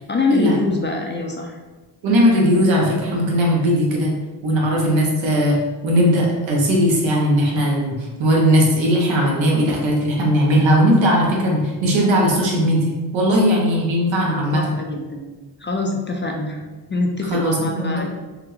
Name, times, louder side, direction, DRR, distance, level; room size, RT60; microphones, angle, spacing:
voice 1, 0.1-1.6 14.3-15.3 15.6-18.1, left 2 dB, 25° left, 1 dB, 0.5 m, -24 dB
voice 2, 2.0-4.2 4.4-5.6 5.8-12.8 13.1-14.7 17.3-18.1, equal, 75° right, -2 dB, 1.0 m, -18 dB
3.6 x 2.3 x 3.1 m, 1.3 s
supercardioid pair, 60°, 46 cm